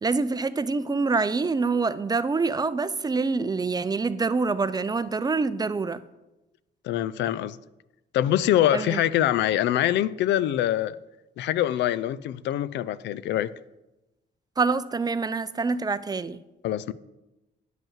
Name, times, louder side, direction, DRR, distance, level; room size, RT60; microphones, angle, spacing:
voice 1, 0.0-6.0 8.7-9.0 14.6-16.4, right 4 dB, 20° right, 0.4 m, -26 dB
voice 2, 6.8-7.6 8.1-11.0 11.4-13.5 16.6-16.9, left 12 dB, 85° left, 0.4 m, -24 dB
9.2 x 5.4 x 7.3 m
cardioid pair, 100°, 18 cm